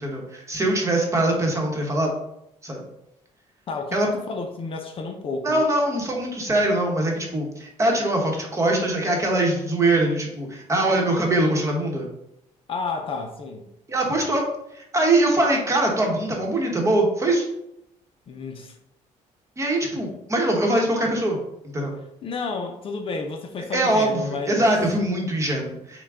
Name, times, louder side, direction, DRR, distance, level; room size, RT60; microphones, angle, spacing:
voice 1, 0.0-2.1 2.6-2.8 3.9-4.1 5.4-12.1 13.9-14.4 14.7-17.5 19.6-21.4 21.7-21.9 23.7-26.0, right 1 dB, 20° right, 0 dB, 1.0 m, -22 dB
voice 2, 3.7-5.7 12.7-13.7 18.3-18.8 22.2-24.7, left 4 dB, 40° left, 4 dB, 0.5 m, -31 dB
5.9 x 2.2 x 3.6 m, 0.81 s
cardioid pair, 125°, 14 cm